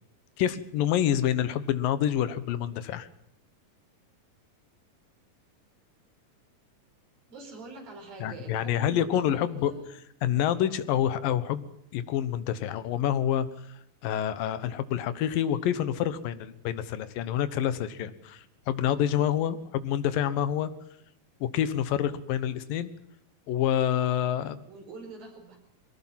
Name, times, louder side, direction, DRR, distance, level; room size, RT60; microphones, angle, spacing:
voice 1, 0.4-3.1 8.2-9.7 10.2-11.7 11.9-13.5 14.0-20.7 21.4-22.9 23.5-24.6, left 10 dB, 75° left, 13 dB, 2.9 m, -27 dB
voice 2, 7.3-9.8 19.0-19.3 24.7-25.6, right 3 dB, 85° right, 2 dB, 6.7 m, -45 dB
22.5 x 18.0 x 7.6 m, 0.72 s
omnidirectional pair, 4.0 m